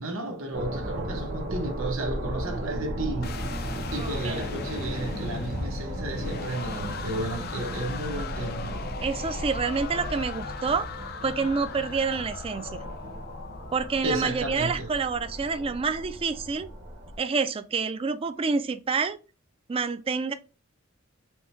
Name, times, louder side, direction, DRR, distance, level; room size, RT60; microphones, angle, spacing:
voice 1, 0.0-3.5 3.9-9.0 14.0-14.9, right 2 dB, 75° right, 0.9 m, -33 dB
sound 1, 0.5-17.2, equal, 55° right, 1.0 m, -35 dB
sound 2, 3.2-15.3, left 6 dB, 50° left, 0.4 m, -39 dB
voice 2, 4.0-4.5 9.0-10.9 11.2-12.8 13.7-16.7 17.2-19.2 19.7-20.3, right 5 dB, 30° right, 0.4 m, -28 dB
4.5 x 2.2 x 4.2 m
head